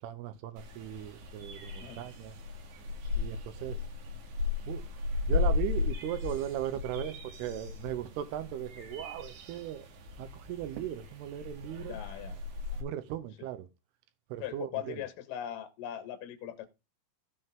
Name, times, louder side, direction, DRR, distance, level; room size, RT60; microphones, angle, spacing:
voice 1, 0.0-2.3 3.2-3.8 4.7-5.0 5.3-9.9 10.2-12.0 12.8-13.7 14.3-15.0, right 12 dB, 90° right, 2.3 m, -38 dB
sound 1, 0.6-12.8, left 4 dB, 70° right, 4.1 m, -36 dB
voice 2, 11.9-12.4 14.4-16.7, left 11 dB, 60° left, 2.4 m, -40 dB
15.5 x 5.5 x 3.6 m
omnidirectional pair, 5.6 m